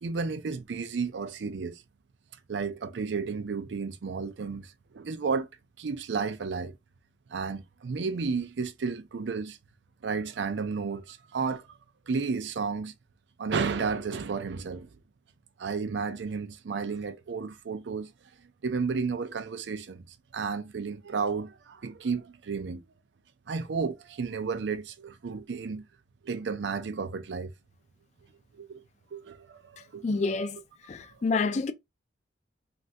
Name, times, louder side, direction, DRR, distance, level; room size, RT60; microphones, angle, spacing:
voice 1, 0.0-1.8 2.5-5.5 5.8-6.7 7.3-9.6 10.0-11.7 12.1-12.9 13.4-14.9 15.6-18.1 18.6-20.0 20.3-22.8 23.5-25.8 26.2-27.5 28.6-28.8 29.1-30.3 31.0-31.2, right 5 dB, 80° right, 0.5 m, -32 dB
voice 2, 30.0-30.6 30.9-31.7, left 4 dB, 40° left, 0.4 m, -28 dB
3.3 x 2.5 x 2.6 m
head